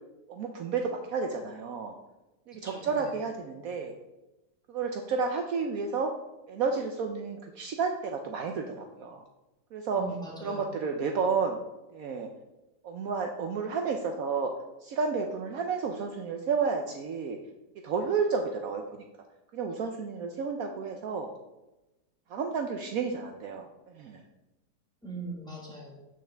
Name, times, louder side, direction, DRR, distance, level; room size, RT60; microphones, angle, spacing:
voice 1, 0.3-2.0 2.5-3.9 4.7-6.1 6.5-9.2 9.7-10.0 10.4-11.6 11.9-12.3 12.8-14.5 14.8-17.4 17.8-18.8 19.5-21.3 22.3-23.7 24.0-24.2, right 5 dB, 65° right, 3 dB, 1.0 m, -31 dB
voice 2, 2.5-3.1 10.0-10.7 25.0-25.9, right 3 dB, 5° left, -2 dB, 1.3 m, -40 dB
7.9 x 6.3 x 3.4 m, 1.0 s
omnidirectional pair, 1.8 m